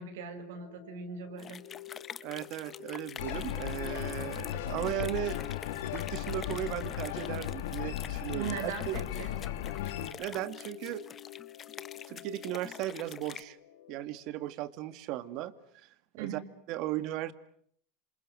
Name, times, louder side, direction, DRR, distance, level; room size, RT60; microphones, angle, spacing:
voice 1, 0.0-1.7 8.3-9.3 16.2-16.4, right 6 dB, 85° right, 7 dB, 6.2 m, -39 dB
sound 1, 0.5-14.1, left 15 dB, 60° left, 2.4 m, -51 dB
sound 2, 1.4-13.4, left 8 dB, 30° left, 1.2 m, -47 dB
voice 2, 2.2-5.4 5.9-8.6 8.9-9.0 10.2-11.0 12.1-13.6 13.9-15.5 16.1-16.4 16.7-17.3, right 13 dB, 55° right, 13 dB, 2.1 m, -36 dB
sound 3, 3.2-10.1, left 12 dB, 85° left, 2.7 m, -36 dB
27.5 x 27.0 x 7.8 m, 0.65 s
supercardioid pair, 125°, 0 cm